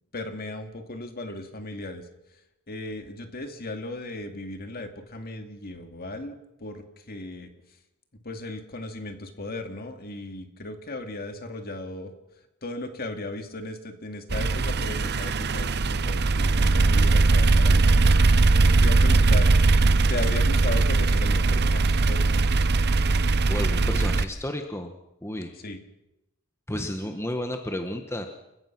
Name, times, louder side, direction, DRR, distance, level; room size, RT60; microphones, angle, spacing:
voice 1, 0.1-2.1 2.7-7.5 8.2-12.1 12.6-18.1 18.6-19.5 19.9-22.4 25.6-25.8, left 2 dB, 45° left, 6 dB, 2.3 m, -36 dB
sound 1, 14.3-24.2, right 3 dB, 50° right, 0.8 m, -20 dB
voice 2, 23.5-24.9 25.2-25.5 26.7-28.3, left 1 dB, 10° left, 5 dB, 1.3 m, -32 dB
29.5 x 15.0 x 6.1 m, 0.91 s
head